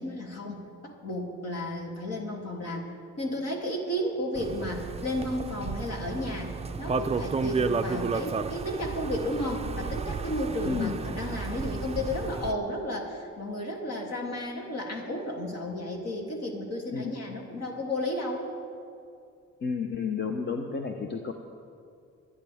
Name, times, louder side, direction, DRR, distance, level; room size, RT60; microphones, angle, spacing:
voice 1, 0.0-2.8 3.2-6.5 6.8-18.5, left 1 dB, 55° left, -1 dB, 2.8 m, -33 dB
sound 1, 4.4-12.5, right 5 dB, 20° right, 0.5 m, -32 dB
voice 2, 19.6-21.3, left 5 dB, 35° left, 4 dB, 0.9 m, -31 dB
23.5 x 9.8 x 3.5 m, 2.4 s
cardioid pair, 90°, 30 cm